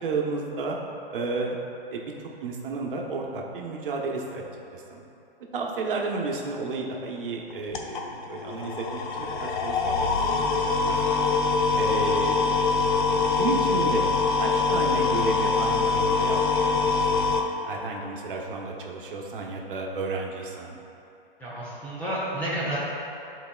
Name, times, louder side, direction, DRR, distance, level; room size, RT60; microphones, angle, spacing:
voice 1, 0.0-0.8 1.1-1.6 1.9-2.1 2.4-4.4 4.7-5.0 5.5-10.1 10.3-10.5 11.8-12.5 13.1-14.0 14.4-20.7, right 4 dB, 65° right, -1 dB, 1.0 m, -32 dB
sound 1, 7.5-17.4, left 4 dB, 55° left, 0.7 m, -24 dB
voice 2, 10.9-11.2 21.4-22.8, right 1 dB, 5° left, -9 dB, 0.5 m, -31 dB
10.5 x 4.1 x 2.3 m, 2.8 s
hypercardioid pair, 160°, 29 cm